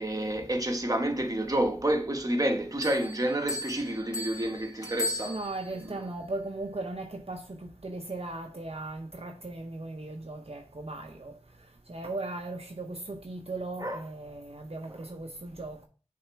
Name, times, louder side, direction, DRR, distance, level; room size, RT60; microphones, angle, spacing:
voice 1, 0.0-5.4 5.8-6.0 13.8-14.0 14.9-15.1, right 1 dB, 30° right, 1.1 m, -29 dB
Bell, 2.8-5.9, left 2 dB, 30° left, 2.6 m, -37 dB
voice 2, 5.3-11.3 11.9-15.9, right 2 dB, 55° right, 0.8 m, -37 dB
6.5 x 3.6 x 4.6 m
wide cardioid pair, 55°, 12 cm